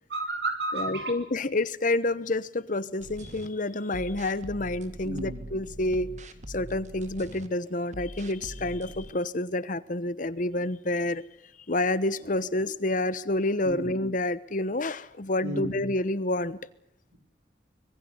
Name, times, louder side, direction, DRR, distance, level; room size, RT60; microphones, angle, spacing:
voice 1, 0.1-1.2 5.0-5.4 13.6-14.0 15.4-15.8, right 2 dB, 70° right, 9 dB, 5.0 m, -32 dB
voice 2, 0.7-6.1 6.5-11.2 11.7-16.6, left 2 dB, 45° left, 17 dB, 1.1 m, -28 dB
sound 1, 3.0-3.5 3.9-7.5 7.9-9.1, right 1 dB, 45° right, 1.9 m, -42 dB
25.5 x 21.5 x 8.0 m, 0.70 s
head